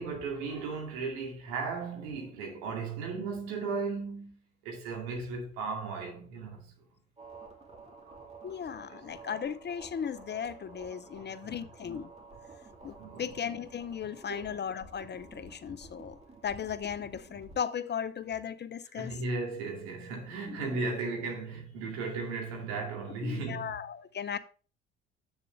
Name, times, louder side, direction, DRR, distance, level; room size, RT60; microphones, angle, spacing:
voice 1, 0.0-4.4 4.6-6.7 8.1-8.2 8.9-9.0 11.2-11.7 13.0-13.3 14.3-14.5 18.9-23.7, right 4 dB, 75° right, 2.3 m, -36 dB
sound 1, 7.2-17.6, right 3 dB, 20° right, 2.7 m, -51 dB
voice 2, 8.4-12.1 12.8-19.1 20.5-20.6 23.2-24.4, left 8 dB, 30° left, 0.6 m, -37 dB
8.1 x 6.9 x 3.3 m
hypercardioid pair, 50°, 33 cm